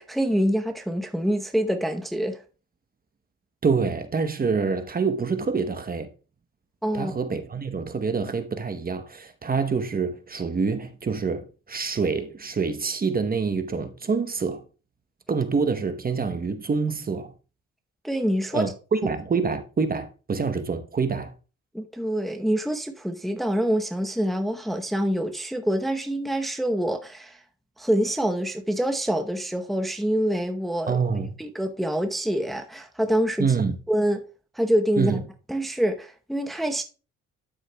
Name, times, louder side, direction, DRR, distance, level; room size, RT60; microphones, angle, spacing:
voice 1, 0.0-2.4 6.8-7.1 18.0-18.6 21.7-27.4 27.8-31.0 31.4-33.5 33.9-34.2 34.5-35.1 35.5-36.8, equal, ahead, 0.8 m, -26 dB
voice 2, 3.6-6.1 6.9-14.6 15.3-17.3 18.5-21.3 30.9-31.3 33.4-33.8 35.0-35.2, right 5 dB, 30° right, 0.9 m, -26 dB
12.0 x 6.3 x 2.2 m
cardioid pair, 90°, 30 cm